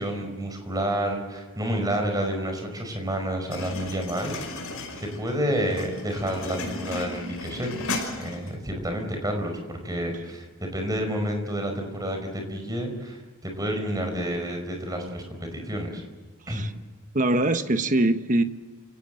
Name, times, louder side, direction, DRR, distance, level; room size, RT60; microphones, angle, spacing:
voice 1, 0.0-4.4 5.0-7.8 8.2-16.0 16.5-16.6, equal, 15° right, 5.0 m, -29 dB
sound 1, 3.5-8.6, left 3 dB, 70° left, 5.7 m, -35 dB
voice 2, 17.1-18.4, right 2 dB, 35° right, 1.3 m, -22 dB
28.5 x 17.5 x 7.8 m
head